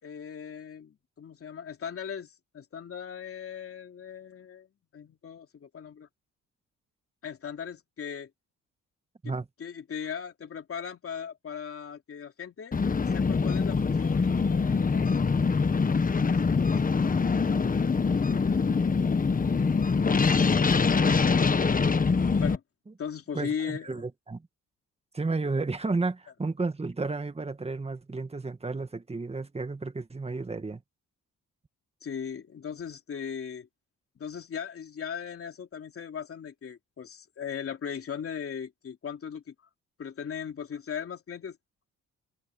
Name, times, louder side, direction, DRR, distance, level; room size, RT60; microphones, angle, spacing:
voice 1, 0.0-4.7 4.9-6.1 7.2-8.3 9.2-9.3 9.6-12.8 13.1-16.2 22.4-22.6 23.0-23.9 32.0-33.7 34.2-39.5 40.0-41.6, left 7 dB, 50° left, 3.1 m, -39 dB
sound 1, 12.7-22.6, left 5 dB, 30° left, 1.4 m, -24 dB
voice 2, 23.3-24.5 25.1-30.8, right 3 dB, 20° right, 1.9 m, -32 dB
cardioid pair, 90°, 30 cm